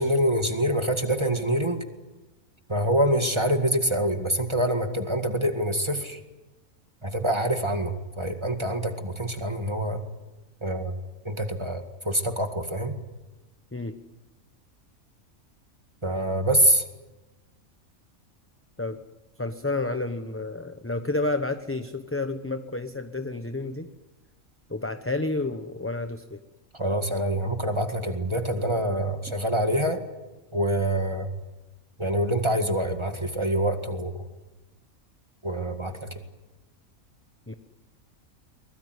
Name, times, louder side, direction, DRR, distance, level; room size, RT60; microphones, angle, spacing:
voice 1, 0.0-1.8 2.7-6.2 7.0-10.0 10.6-10.9 11.2-13.0 16.0-16.8 26.7-30.0 30.5-31.3 32.0-34.1 35.4-36.1, right 1 dB, 20° right, 6 dB, 2.0 m, -25 dB
voice 2, 19.4-23.9 24.7-26.4 37.5-37.6, left 2 dB, 10° left, 8 dB, 0.8 m, -30 dB
23.5 x 21.0 x 9.5 m, 1.1 s
omnidirectional pair, 1.4 m